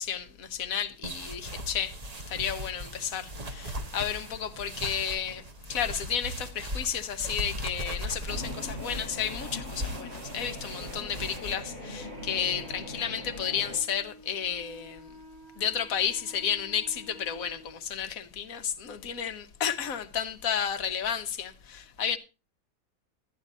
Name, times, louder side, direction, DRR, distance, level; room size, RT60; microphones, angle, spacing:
voice 1, 0.0-2.0 2.3-5.4 5.7-15.1 15.6-22.2, left 8 dB, 65° left, 1.3 m, -32 dB
sound 1, 1.0-11.5, equal, 30° right, 1.2 m, -38 dB
sound 2, 8.3-13.8, equal, 45° right, 5.9 m, -41 dB
Wind instrument woodwind instrument, 12.0-17.8, left 1 dB, 70° right, 3.6 m, -51 dB
13.0 x 9.5 x 4.1 m
omnidirectional pair, 1.6 m